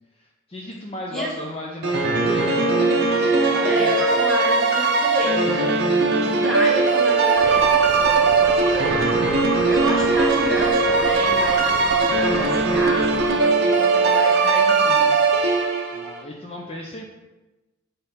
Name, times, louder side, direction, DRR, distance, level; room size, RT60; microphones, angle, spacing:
voice 1, 0.2-4.0 15.9-17.0, left 1 dB, 30° left, -1 dB, 0.5 m, -35 dB
sound 1, 1.8-16.1, right 3 dB, 50° right, 0.7 m, -19 dB
voice 2, 3.6-5.9 6.1-9.3 9.7-15.1, right 1 dB, 5° left, -5 dB, 1.4 m, -30 dB
sound 2, 7.4-13.4, right 4 dB, 85° right, 0.5 m, -31 dB
6.7 x 3.5 x 4.1 m, 1.1 s
head